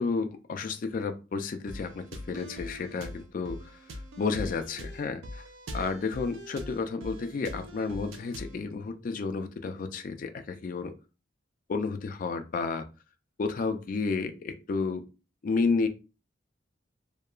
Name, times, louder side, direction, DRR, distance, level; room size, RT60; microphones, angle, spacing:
voice 1, 0.0-5.4 5.7-10.9 11.7-12.9 13.4-15.0 15.4-15.9, left 4 dB, 45° left, 7 dB, 0.3 m, -31 dB
sound 1, 1.7-8.6, left 1 dB, 80° right, 0.4 m, -42 dB
2.8 x 2.2 x 2.3 m, 0.31 s
head